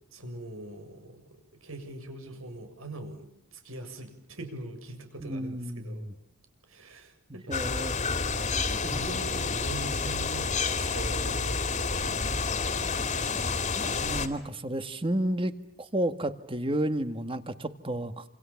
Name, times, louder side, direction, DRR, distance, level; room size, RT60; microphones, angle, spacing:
voice 1, 0.1-6.1 6.7-7.6 8.4-13.3, right 1 dB, 70° right, 7 dB, 7.1 m, -42 dB
voice 2, 5.2-6.1 7.5-8.0 8.8-9.0 13.7-18.2, right 1 dB, 25° right, 10 dB, 1.8 m, -32 dB
sound 1, 7.5-14.3, left 4 dB, 30° left, 2.5 m, -29 dB
29.0 x 28.5 x 7.2 m, 0.74 s
head